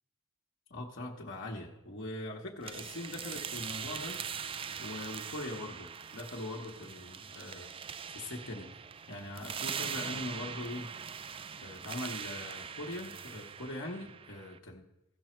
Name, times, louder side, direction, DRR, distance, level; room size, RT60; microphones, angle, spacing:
voice 1, 0.7-4.2 4.8-7.7 8.1-8.7 9.1-10.9 11.6-14.8, left 1 dB, 55° left, -1 dB, 1.2 m, -41 dB
sound 1, 2.6-14.6, right 7 dB, 25° right, 0.3 m, -42 dB
15.5 x 6.3 x 4.5 m, 0.98 s
head